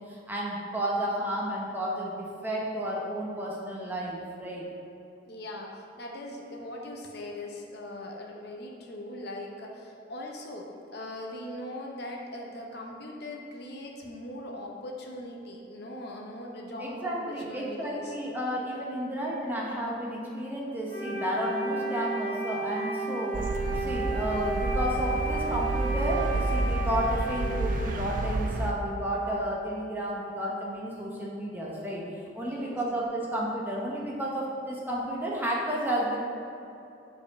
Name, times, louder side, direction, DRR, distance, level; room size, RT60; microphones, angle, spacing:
voice 1, 0.0-4.7 16.8-23.5 23.7-32.0 32.3-36.2, right 1 dB, 10° right, -4 dB, 0.9 m, -32 dB
voice 2, 5.3-18.2 32.5-32.8, left 1 dB, 55° left, 0 dB, 0.8 m, -40 dB
Wind instrument woodwind instrument, 20.9-28.6, right 2 dB, 15° left, 1.5 m, -33 dB
sound 1, 23.3-28.7, right 2 dB, 40° right, 0.3 m, -30 dB
5.2 x 4.6 x 5.8 m, 2.7 s
head